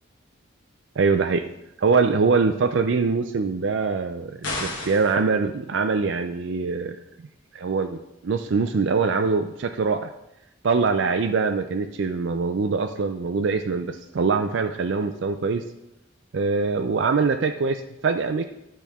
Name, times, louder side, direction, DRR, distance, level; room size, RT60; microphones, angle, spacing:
voice 1, 1.0-1.5 1.8-7.0 7.5-10.1 10.6-15.6 16.3-18.4, right 4 dB, 60° right, 7 dB, 0.4 m, -23 dB
sound 1, 4.4-5.2, left 2 dB, 65° left, 1.6 m, -31 dB
12.0 x 4.3 x 3.5 m, 0.87 s
head